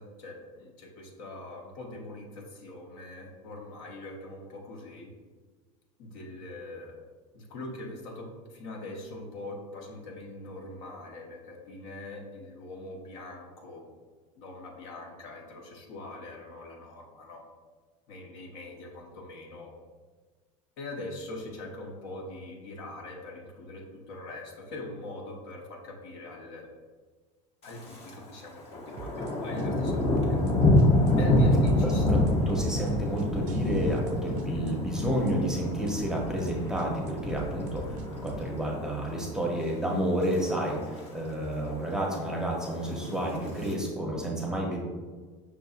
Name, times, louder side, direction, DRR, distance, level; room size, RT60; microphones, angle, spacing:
voice 1, 0.0-5.1 6.0-6.9 7.3-13.8 14.4-17.4 18.1-19.7 20.8-26.7 27.6-30.4 31.2-32.0, left 2 dB, 75° left, 1 dB, 0.8 m, -42 dB
Thunder, 27.6-28.2 28.5-38.8 39.2-39.5 40.0-40.4 40.7-40.8 41.0-41.1 41.4-42.0 42.8-43.7, left 1 dB, 35° left, 0.8 m, -27 dB
sound 1, 29.0-29.3 29.6-29.9 30.2-30.5 30.8-31.1 31.4-31.7 32.0-34.1 34.4-34.7 35.0-35.3 35.6-35.9 36.2-36.5 36.8-38.5, right 6 dB, 50° right, 0.4 m, -43 dB
voice 2, 31.6-44.8, equal, 5° right, -2 dB, 0.7 m, -30 dB
5.8 x 2.6 x 2.4 m, 1.4 s
supercardioid pair, 115°, 17 cm